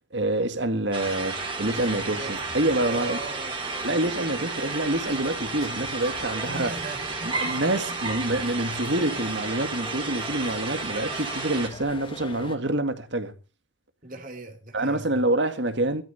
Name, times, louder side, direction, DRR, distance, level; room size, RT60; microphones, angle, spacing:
voice 1, 0.1-3.2 3.8-6.7 7.2-13.3 14.7-16.0, right 1 dB, 65° right, 2.0 m, -27 dB
sound 1, 0.9-11.7, right 4 dB, 25° right, 3.4 m, -32 dB
sound 2, 1.0-12.6, left 2 dB, 25° left, 1.7 m, -43 dB
voice 2, 2.8-3.5 4.4-4.5 6.4-8.0 8.6-8.8 14.0-15.2, right 2 dB, 45° right, 2.8 m, -39 dB
18.5 x 13.0 x 4.2 m
head